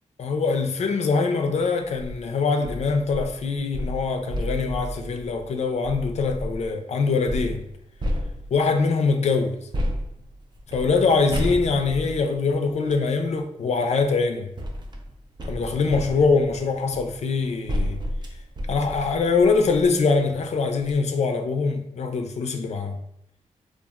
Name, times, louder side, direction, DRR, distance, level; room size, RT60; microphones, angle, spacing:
voice 1, 0.2-7.6 8.5-9.6 10.7-14.5 15.5-18.0 18.7-23.0, left 4 dB, 60° left, 0.4 m, -23 dB
sound 1, 1.8-2.1 2.6-6.7 7.3-8.8 9.7-13.1 14.0-20.0 20.4-20.5 20.8-20.9, equal, 35° right, 0.4 m, -32 dB
2.8 x 2.4 x 2.3 m
cardioid pair, 90°, 13 cm